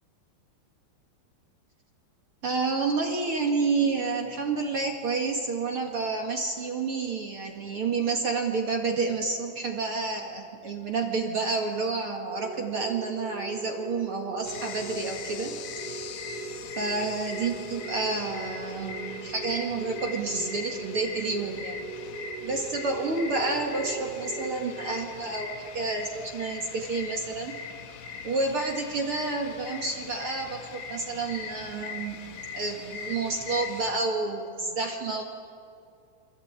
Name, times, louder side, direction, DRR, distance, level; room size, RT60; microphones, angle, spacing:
voice 1, 2.4-15.6 15.8-16.0 16.8-21.8 22.4-27.5 28.2-32.2 32.5-35.2, right 3 dB, 50° right, 2 dB, 1.7 m, -29 dB
sound 1, 12.3-25.4, right 3 dB, 30° left, 8.9 m, -40 dB
sound 2, 14.4-33.9, left 5 dB, 75° left, 3.5 m, -41 dB
28.5 x 23.0 x 8.8 m, 2.4 s
omnidirectional pair, 5.0 m